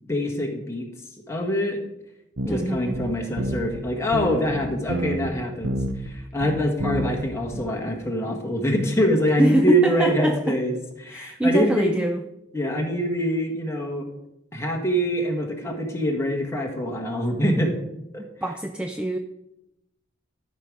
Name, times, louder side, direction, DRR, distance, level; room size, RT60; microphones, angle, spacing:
voice 1, 0.1-0.9 1.3-1.8 2.5-5.7 6.0-12.0 12.5-14.1 14.5-17.7 18.1-18.2, equal, 15° left, 1 dB, 1.5 m, -24 dB
voice 2, 2.4-3.0 9.4-10.6 11.1-12.2 18.4-19.2, right 1 dB, 5° right, 6 dB, 0.3 m, -24 dB
sound 1, 2.4-3.8 4.1-5.3 5.6-6.1 6.4-7.3 7.5-7.6, right 1 dB, 75° right, 0.9 m, -28 dB
13.0 x 5.3 x 4.8 m, 0.89 s
head